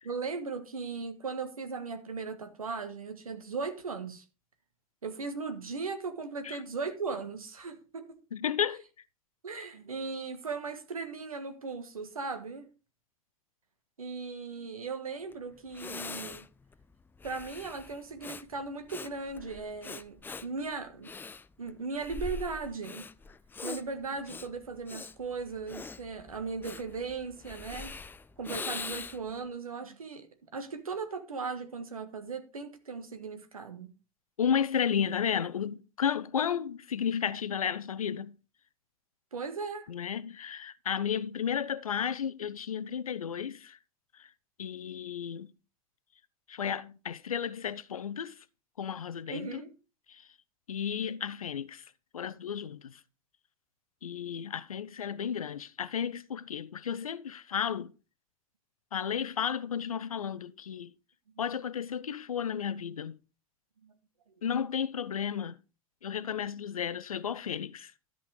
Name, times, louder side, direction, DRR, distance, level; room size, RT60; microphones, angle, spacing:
voice 1, 0.0-4.2 5.0-8.2 9.4-12.7 14.0-16.5 17.2-21.1 21.6-23.1 23.6-27.9 28.4-30.3 30.5-33.9 39.3-39.9 49.3-49.7 63.8-63.9, right 4 dB, 80° right, 1.5 m, -37 dB
voice 2, 8.3-8.8 34.4-38.4 39.9-43.8 44.2-44.3 44.6-45.5 46.5-48.4 48.8-49.7 50.1-50.3 50.7-51.9 52.1-53.0 54.0-57.9 58.9-60.9 61.4-63.2 64.4-65.5 66.0-67.9, left 8 dB, 75° left, 0.6 m, -33 dB
Breathing, 15.3-15.4 15.7-29.4, left 4 dB, 10° left, 0.4 m, -43 dB
13.5 x 5.4 x 4.9 m
figure-of-eight pair, 80°, 18 cm